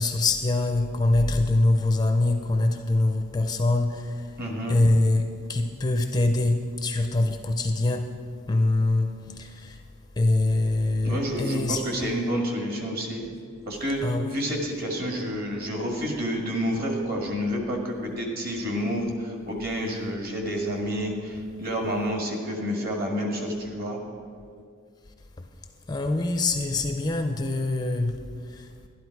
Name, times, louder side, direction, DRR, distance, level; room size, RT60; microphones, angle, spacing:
voice 1, 0.0-4.4 4.7-8.1 8.5-9.8 10.2-11.8 14.0-14.3 25.9-28.9, left 2 dB, 20° left, 0.5 m, -24 dB
voice 2, 4.4-4.8 11.0-13.3 13.6-24.0, equal, 45° right, 1.8 m, -29 dB
12.0 x 11.0 x 4.7 m
head